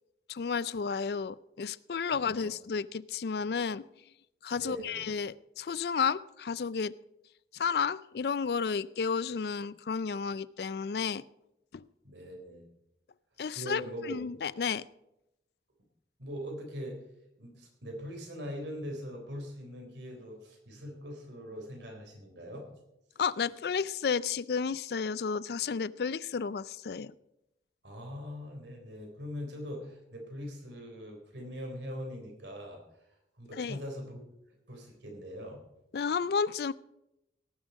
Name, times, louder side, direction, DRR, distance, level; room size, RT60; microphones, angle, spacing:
voice 1, 0.3-3.8 4.4-6.9 7.5-11.2 11.7-11.8 13.4-14.8 23.2-27.1 33.6-33.8 35.9-36.7, left 6 dB, 60° left, 19 dB, 0.4 m, -32 dB
voice 2, 2.1-2.5 4.5-5.0 12.0-12.6 13.6-14.2 16.2-17.0 17.4-22.7 27.8-32.8 33.4-34.2 34.7-35.6, equal, 85° right, 2 dB, 3.7 m, -41 dB
18.0 x 7.3 x 5.1 m, 0.87 s
head